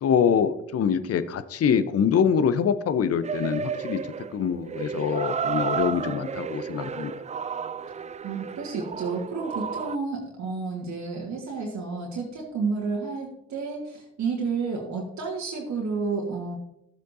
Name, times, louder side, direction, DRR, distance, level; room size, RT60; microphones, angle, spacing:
voice 1, 0.0-4.0 4.3-7.1, left 7 dB, 45° left, 13 dB, 0.8 m, -24 dB
sound 1, 3.2-10.0, right 6 dB, 20° right, 0.4 m, -32 dB
voice 2, 8.2-16.6, right 4 dB, 55° right, -1 dB, 1.7 m, -31 dB
13.0 x 7.8 x 2.7 m, 0.79 s
hypercardioid pair, 45°, 33 cm